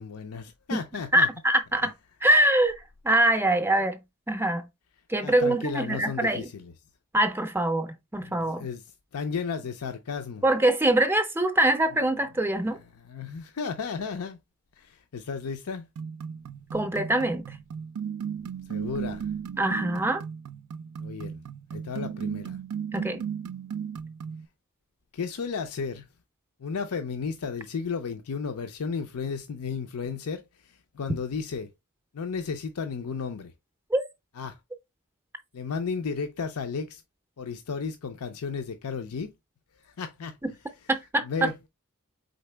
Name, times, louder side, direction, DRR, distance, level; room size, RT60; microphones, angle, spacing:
voice 1, 0.0-1.3 5.2-6.7 8.2-8.8 9.1-10.4 12.6-12.8 13.1-14.4 14.8-15.9 18.4-19.3 21.0-21.4 21.7-22.6 25.1-26.0 26.6-31.7 32.1-33.5 34.4-34.6 35.5-37.0 37.4-39.3 39.8-40.4 41.2-41.6, left 5 dB, 85° left, 0.5 m, -34 dB
voice 2, 1.1-1.9 2.2-4.0 4.3-4.7 5.1-6.5 7.1-8.7 10.4-12.8 16.7-17.4 19.6-20.2 22.9-23.2 33.9-34.0 40.4-40.5 40.9-41.2, right 1 dB, 10° right, 0.5 m, -24 dB
sound 1, 16.0-24.4, right 7 dB, 80° right, 0.4 m, -35 dB
4.1 x 3.9 x 3.3 m
head